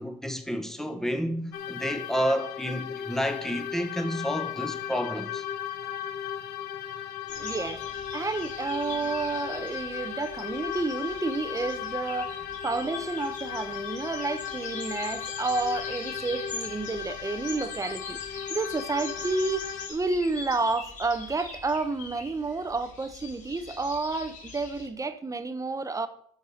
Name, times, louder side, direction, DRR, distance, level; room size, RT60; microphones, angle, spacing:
voice 1, 0.0-5.4, equal, 5° left, 1.3 m, -30 dB
sound 1, 1.5-19.9, left 9 dB, 75° left, 1.1 m, -36 dB
sound 2, 7.3-24.9, left 4 dB, 50° left, 4.0 m, -42 dB
voice 2, 7.4-7.8 8.1-18.2 18.5-26.1, right 3 dB, 20° right, 0.9 m, -30 dB
12.5 x 4.7 x 5.7 m
cardioid pair, 110°, 17 cm